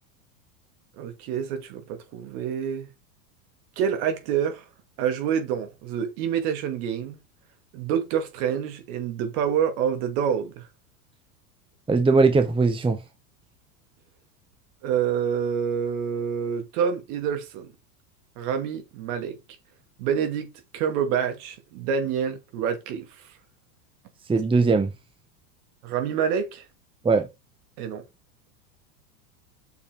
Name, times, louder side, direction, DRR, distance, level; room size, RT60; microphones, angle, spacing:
voice 1, 1.0-2.9 3.8-4.7 5.0-7.2 7.7-10.7 14.8-17.7 18.4-19.4 20.0-23.1 25.8-26.7 27.8-28.0, right 8 dB, 65° right, 2.2 m, -27 dB
voice 2, 11.9-13.0 24.3-24.9 27.0-27.3, right 4 dB, 10° right, 1.0 m, -20 dB
6.5 x 5.2 x 3.6 m
hypercardioid pair, 105°, 48 cm